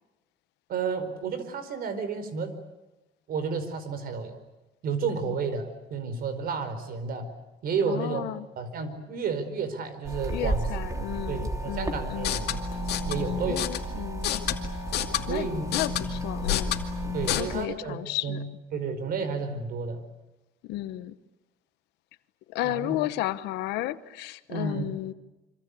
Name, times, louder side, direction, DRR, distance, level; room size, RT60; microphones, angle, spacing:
voice 1, 0.7-2.5 3.3-4.4 4.8-7.3 7.6-8.2 8.6-10.7 11.0-12.5 13.1-13.6 15.3-15.7 17.1-18.0 18.2-18.5 18.7-20.0 22.6-23.0 24.5-24.9, right 5 dB, 60° right, 11 dB, 4.9 m, -31 dB
voice 2, 7.9-8.5 10.3-12.4 13.2-14.4 15.3-16.8 17.4-18.4 20.7-21.1 22.5-25.1, left 15 dB, 90° left, 13 dB, 1.2 m, -33 dB
sound 1, 10.0-17.6, right 3 dB, 20° right, 2.9 m, -34 dB
sound 2, 12.1-17.4, left 10 dB, 75° left, 2.4 m, -31 dB
26.0 x 26.0 x 8.5 m, 1.0 s
cardioid pair, 110°, 17 cm